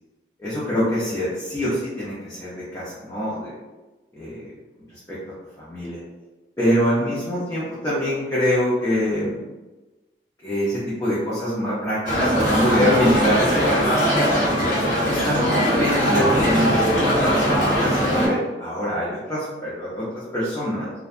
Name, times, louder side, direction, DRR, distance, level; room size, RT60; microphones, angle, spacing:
voice 1, 0.4-3.6 4.2-4.5 5.1-5.2 5.6-6.0 6.6-9.4 10.4-14.3 15.0-17.0 17.3-20.9, equal, 20° left, -9 dB, 0.5 m, -24 dB
sound 1, 12.0-18.3, equal, 45° left, 1.2 m, -20 dB
2.6 x 2.2 x 2.4 m, 1.2 s
head